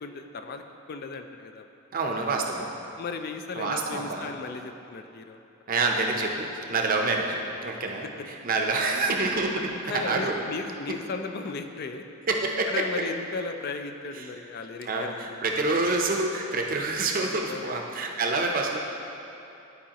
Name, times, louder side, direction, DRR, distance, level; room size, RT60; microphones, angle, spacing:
voice 1, 0.0-1.7 3.0-5.4 8.9-9.0 9.8-12.0 12.7-15.4 17.5-17.9, left 4 dB, 45° left, 6 dB, 0.4 m, -36 dB
voice 2, 1.9-2.7 3.5-4.3 5.7-10.4 12.3-12.8 14.2-14.3 14.8-18.8, right 3 dB, 40° right, 1 dB, 0.6 m, -27 dB
11.0 x 4.8 x 2.9 m, 2.9 s
head